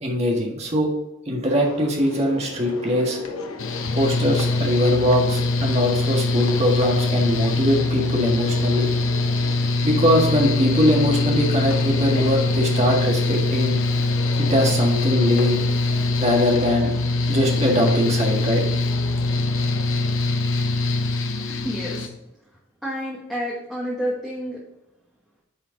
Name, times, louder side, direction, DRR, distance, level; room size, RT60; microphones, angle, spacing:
voice 1, 0.0-0.9 1.3-3.2 3.9-8.9 9.8-13.8 14.4-15.6 16.2-16.9 17.3-18.6, equal, 30° right, -1 dB, 1.6 m, -21 dB
sound 1, 1.5-20.2, left 3 dB, 85° left, 1.1 m, -38 dB
Mechanical fan, 3.6-22.1, left 2 dB, 65° left, 0.8 m, -23 dB
voice 2, 21.3-22.1 22.8-24.6, equal, ahead, -6 dB, 1.2 m, -29 dB
9.0 x 4.4 x 3.9 m, 0.95 s
head